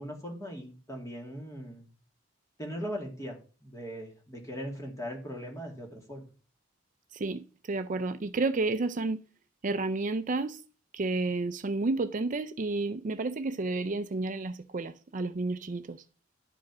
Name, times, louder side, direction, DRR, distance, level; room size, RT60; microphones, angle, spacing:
voice 1, 0.0-1.9 2.6-6.3, equal, 15° left, 2.4 m, -39 dB
voice 2, 7.1-9.2 9.6-10.6 10.9-16.0, right 3 dB, 40° right, 0.4 m, -31 dB
11.5 x 5.1 x 6.0 m
head